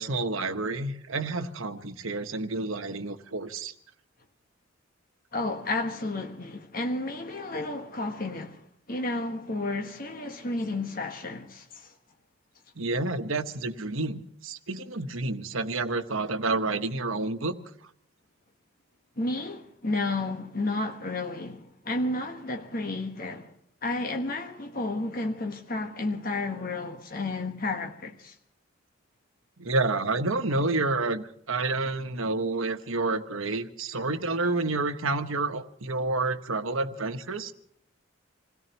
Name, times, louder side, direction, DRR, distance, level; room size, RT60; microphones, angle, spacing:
voice 1, 0.0-3.7 12.8-17.5 29.6-37.5, right 3 dB, 80° right, 1.2 m, -29 dB
voice 2, 5.3-11.9 19.2-23.5 23.8-28.4, left 2 dB, 45° left, 1.4 m, -32 dB
27.0 x 17.5 x 3.0 m
head